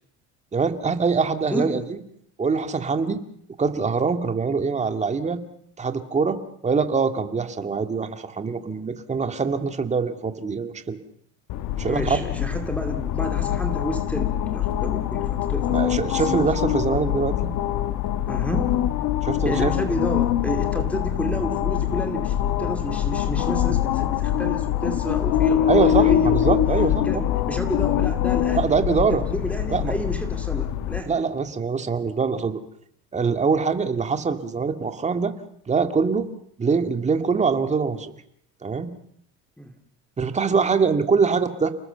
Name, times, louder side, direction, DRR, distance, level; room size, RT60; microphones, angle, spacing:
voice 1, 0.5-1.8 2.4-3.2 3.6-5.4 5.8-11.0 11.8-12.2 15.7-17.5 19.2-19.7 25.7-27.2 28.6-29.2 29.7-29.9 31.1-32.6 33.1-35.3 35.7-36.3 36.6-38.1 38.6-38.9 40.2-41.7, right 5 dB, 20° right, 8 dB, 2.1 m, -23 dB
sound 1, 11.5-31.0, left 12 dB, 65° left, 1.6 m, -24 dB
voice 2, 11.9-16.7 18.3-18.8 19.4-26.6 27.0-28.7 29.1-31.2 39.6-39.8, equal, 5° left, 5 dB, 2.4 m, -30 dB
29.5 x 19.5 x 6.9 m, 0.72 s
cardioid pair, 120°, 32 cm